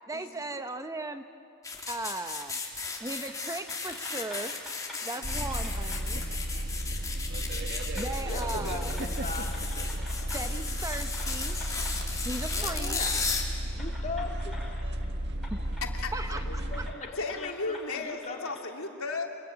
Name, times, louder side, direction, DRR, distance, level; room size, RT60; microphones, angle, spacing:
voice 1, 0.1-1.3 1.9-2.6 3.0-4.5 5.0-6.2 7.9-9.0 10.3-11.6 12.2-13.0 15.5-15.6 16.1-16.8, right 2 dB, 15° right, 8 dB, 0.8 m, -37 dB
sound 1, 1.6-13.4, left 4 dB, 15° left, 3.1 m, -35 dB
sound 2, 3.0-3.4 3.7-6.1 7.2-7.3 7.7-10.6 10.9-12.0 12.5-13.2 13.8-15.1 15.4-15.9 16.1-18.6, left 1 dB, ahead, 7.0 m, -48 dB
sound 3, 5.2-16.9, right 1 dB, 55° right, 1.6 m, -33 dB
voice 2, 8.3-9.5 12.5-13.1 13.7-14.6 16.4-18.4, left 3 dB, 35° left, 2 dB, 2.5 m, -39 dB
voice 3, 15.9-16.6 17.2-19.3, left 3 dB, 90° left, 2 dB, 2.7 m, -35 dB
26.0 x 22.0 x 9.8 m, 2.6 s
head